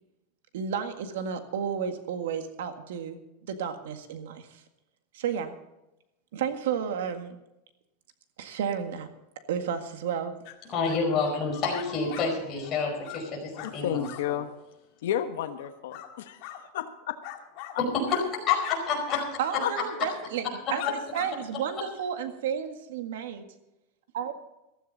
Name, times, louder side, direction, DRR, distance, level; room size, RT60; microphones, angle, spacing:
voice 1, 0.5-4.6 5.1-5.6 6.3-7.4 8.4-9.1 9.5-10.3 19.4-23.4 24.1-24.3, right 7 dB, 90° right, 7 dB, 1.8 m, -32 dB
sound 1, 10.4-10.5 10.8-11.3 11.7-12.3 12.6-12.7 13.0-13.2 13.6-13.7 14.0-14.2 15.6-16.1 16.4-16.6 17.2-17.8 18.1-18.3 18.6-18.8 19.1-19.3 19.6-19.7 20.3-20.5 20.8-21.3, left 14 dB, 50° left, 1.9 m, -40 dB
voice 2, 10.7-14.4 17.9-19.6, left 5 dB, 25° left, -1 dB, 4.9 m, -28 dB
voice 3, 13.6-14.5 15.0-16.5 16.7-17.2 19.6-19.7, left 11 dB, 80° left, 8 dB, 1.2 m, -31 dB
15.0 x 14.5 x 4.1 m, 0.92 s
supercardioid pair, 170°, 0 cm